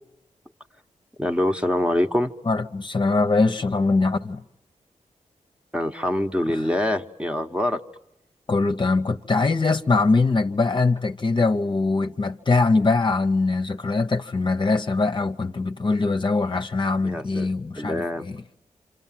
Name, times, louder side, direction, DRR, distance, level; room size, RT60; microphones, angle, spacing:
voice 1, 1.2-2.3 5.7-7.8 17.0-17.5 17.8-18.3, left 1 dB, 10° right, 1.1 m, -24 dB
voice 2, 2.5-4.4 6.5-6.6 8.5-18.4, left 3 dB, 35° left, 1.0 m, -22 dB
28.0 x 26.5 x 7.6 m
cardioid pair, 60°, 13 cm